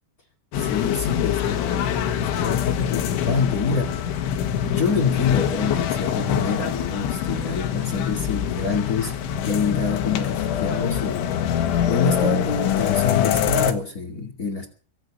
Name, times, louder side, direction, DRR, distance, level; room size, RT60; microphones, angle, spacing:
sound 1, 0.5-13.7, left 9 dB, 75° left, 3.7 m, -24 dB
voice 1, 0.6-4.2 4.6-9.1 9.4-11.3 11.9-14.7, left 5 dB, 40° left, 2 dB, 1.4 m, -27 dB
23.5 x 7.9 x 6.8 m, 0.40 s
omnidirectional pair, 5.8 m